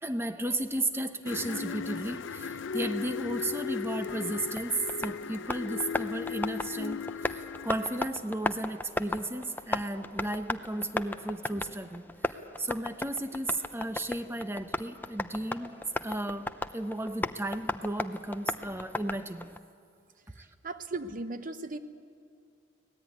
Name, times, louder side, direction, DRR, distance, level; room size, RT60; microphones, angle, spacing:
voice 1, 0.0-16.5 16.7-19.5 20.4-20.5, right 1 dB, 10° right, 9 dB, 1.0 m, -34 dB
sound 1, 1.3-8.1, left 6 dB, 65° left, 0.5 m, -37 dB
Tap, 4.1-19.6, left 2 dB, 10° left, 0.6 m, -37 dB
voice 2, 20.4-21.8, right 2 dB, 40° right, 10 dB, 0.9 m, -37 dB
24.5 x 18.5 x 9.4 m, 2.3 s
head